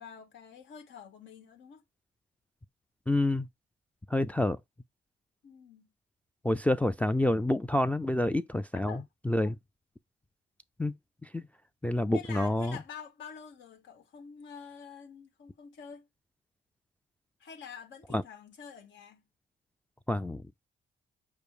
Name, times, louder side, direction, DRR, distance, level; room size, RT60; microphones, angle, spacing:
voice 1, 0.0-1.8 5.4-5.9 8.8-9.0 12.1-16.1 17.4-19.2, left 7 dB, 70° left, 1.3 m, -47 dB
voice 2, 3.1-3.5 4.1-4.6 6.4-9.0 9.3-9.5 10.8-10.9 11.3-11.4 11.8-12.8 18.1-18.2 20.1-20.4, left 1 dB, 5° left, 0.4 m, -27 dB
5.1 x 2.1 x 4.6 m
cardioid pair, 90°, 20 cm